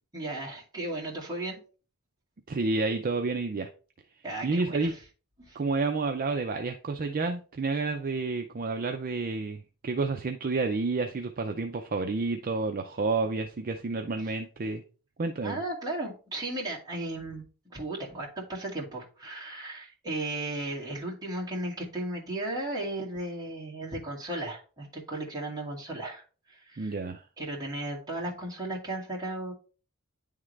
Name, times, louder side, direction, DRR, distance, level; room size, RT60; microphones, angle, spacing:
voice 1, 0.1-1.6 4.2-4.9 5.4-5.6 15.4-17.4 17.7-26.9 27.4-29.5, right 2 dB, 20° right, 2.2 m, -35 dB
voice 2, 2.5-3.7 4.4-4.9 5.5-14.8 15.2-15.6 26.8-27.2, right 3 dB, 40° right, 0.5 m, -30 dB
9.8 x 3.7 x 3.2 m
head